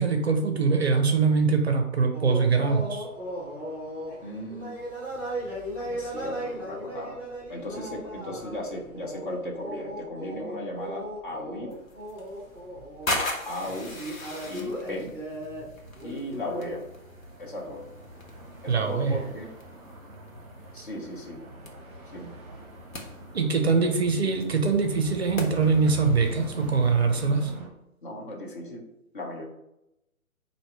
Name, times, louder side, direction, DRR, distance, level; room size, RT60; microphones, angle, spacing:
voice 1, 0.0-3.1 18.7-19.1 20.8-20.9 23.3-27.5, right 4 dB, 50° right, 4 dB, 0.6 m, -23 dB
sound 1, 2.1-16.8, equal, 10° left, 1.3 m, -37 dB
voice 2, 4.2-4.7 5.8-7.2 7.5-11.7 13.5-14.0 14.5-15.2 16.0-16.8 17.4-17.8 18.6-19.5 20.7-21.4 22.1-22.3 28.0-28.8 29.1-29.4, left 1 dB, 35° left, 0 dB, 0.8 m, -36 dB
sound 2, 11.7-27.5, left 2 dB, 65° left, 1.0 m, -40 dB
sound 3, 15.8-27.7, right 1 dB, 30° right, 1.2 m, -43 dB
2.9 x 2.8 x 4.4 m, 0.86 s
figure-of-eight pair, 135°, 43 cm